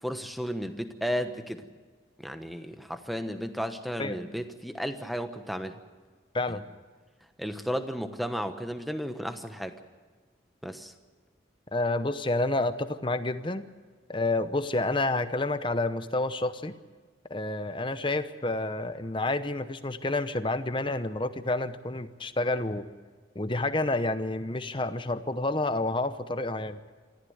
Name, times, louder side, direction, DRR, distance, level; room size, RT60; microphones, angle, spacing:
voice 1, 0.0-1.7 2.2-5.7 6.5-6.6 7.4-9.7 10.6-10.9, equal, ahead, 8 dB, 1.1 m, -34 dB
voice 2, 11.7-13.6 14.1-16.7 17.3-22.8 23.3-26.8, left 2 dB, 25° left, 11 dB, 0.9 m, -29 dB
24.0 x 15.0 x 8.0 m, 1.5 s
head